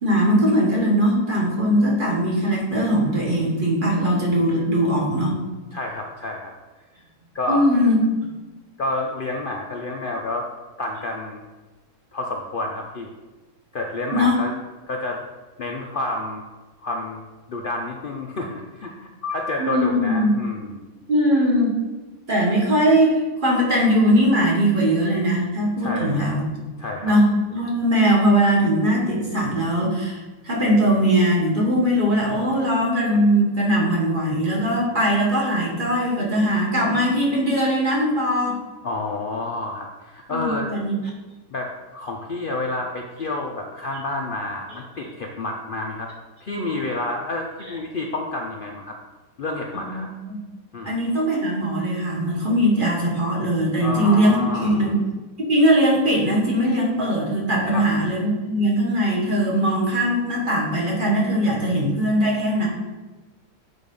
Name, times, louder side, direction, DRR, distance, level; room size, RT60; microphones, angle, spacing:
voice 1, 0.0-5.4 7.5-8.0 14.1-14.4 19.6-20.3 21.1-21.7 22.3-26.5 27.0-38.6 40.3-40.9 49.7-50.4 50.8-55.0 55.4-62.7, equal, 30° right, -3 dB, 1.5 m, -20 dB
voice 2, 5.7-6.5 7.3-7.6 8.8-10.5 10.8-11.4 12.1-13.1 13.7-14.5 14.9-15.2 15.6-16.4 16.8-17.2 17.5-20.9 25.8-26.3 26.8-27.1 38.8-40.7 41.5-46.1 46.4-49.0 49.4-50.1 50.7-50.9 53.8-54.9 57.6-57.9, left 2 dB, 85° left, 1 dB, 0.4 m, -29 dB
6.9 x 4.1 x 5.3 m, 1.2 s
omnidirectional pair, 1.8 m